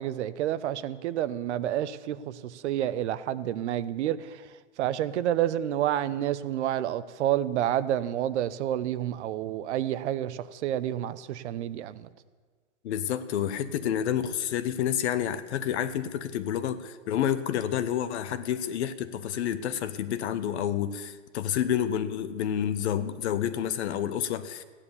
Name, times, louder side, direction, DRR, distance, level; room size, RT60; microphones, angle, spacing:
voice 1, 0.0-4.5 4.8-12.1, right 11 dB, 65° right, 0.8 m, -29 dB
voice 2, 12.8-24.6, left 10 dB, 60° left, 1.1 m, -29 dB
15.0 x 10.0 x 7.0 m
hypercardioid pair, 135°, 37 cm